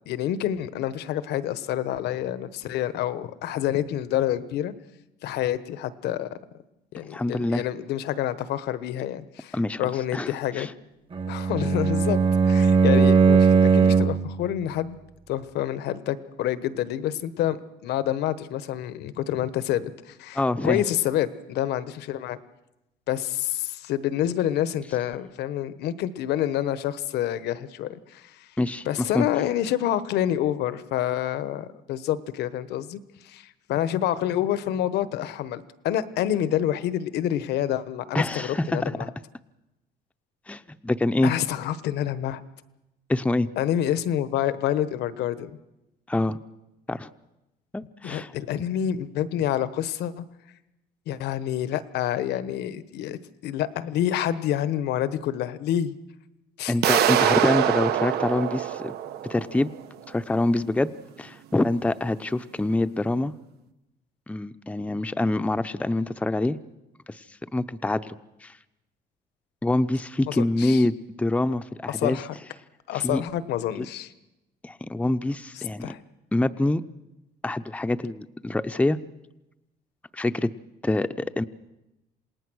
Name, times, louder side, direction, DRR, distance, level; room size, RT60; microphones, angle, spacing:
voice 1, 0.1-4.7 5.2-6.3 6.9-10.7 11.3-15.0 15.3-22.4 23.1-28.5 28.8-39.1 41.2-42.4 43.6-45.5 48.0-50.2 51.1-56.0 56.6-56.7 70.3-70.8 71.9-72.3 72.9-74.1 75.6-76.0, left 11 dB, 80° left, 14 dB, 1.2 m, -28 dB
voice 2, 7.1-7.6 9.5-9.8 10.1-10.7 20.3-20.8 28.6-29.3 38.1-39.1 40.5-41.3 43.1-43.5 46.1-46.4 46.9-47.1 47.7-48.3 56.7-58.9 59.3-59.7 60.1-60.9 61.2-63.3 64.3-66.6 67.1-67.2 67.5-68.5 69.6-72.2 72.9-73.2 73.8-73.9 74.6-75.9 76.3-76.8 77.4-79.0 80.1-80.5 80.8-81.4, left 2 dB, 10° left, 10 dB, 0.7 m, -25 dB
Bowed string instrument, 11.1-14.3, right 5 dB, 30° right, 1.3 m, -19 dB
sound 1, 56.8-59.7, right 10 dB, 70° right, 1.1 m, -24 dB
27.5 x 19.0 x 6.3 m, 0.96 s
cardioid pair, 110°, 17 cm